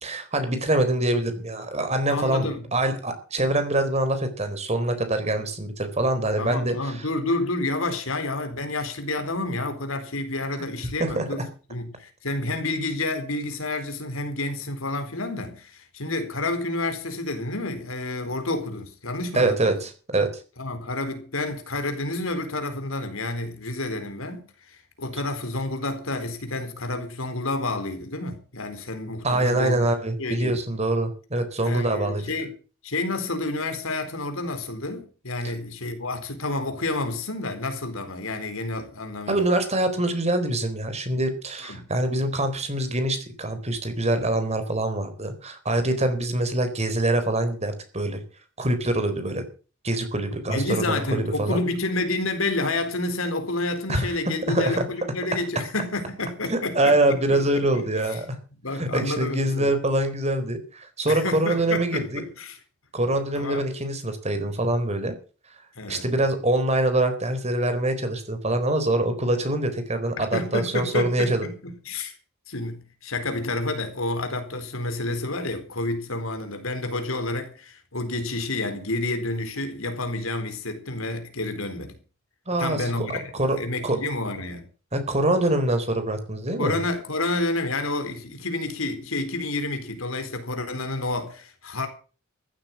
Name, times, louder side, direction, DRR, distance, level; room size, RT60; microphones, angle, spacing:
voice 1, 0.0-7.0 11.0-11.2 19.3-20.4 29.2-32.2 39.3-48.2 48.6-49.5 49.8-51.6 53.9-54.1 54.5-54.8 56.5-58.4 58.8-62.2 62.9-65.1 65.9-71.5 82.5-83.6 83.8-84.0 84.9-86.8, right 1 dB, 30° right, 4.1 m, -24 dB
voice 2, 2.1-2.6 6.4-19.8 20.6-29.8 30.2-30.6 31.6-32.5 32.8-39.5 41.6-41.9 50.5-58.2 58.6-59.7 61.1-62.6 63.3-63.6 65.8-66.1 70.2-72.2 72.5-82.0 82.6-84.7 86.6-91.9, left 2 dB, 85° left, 4.1 m, -29 dB
15.0 x 12.5 x 6.0 m
head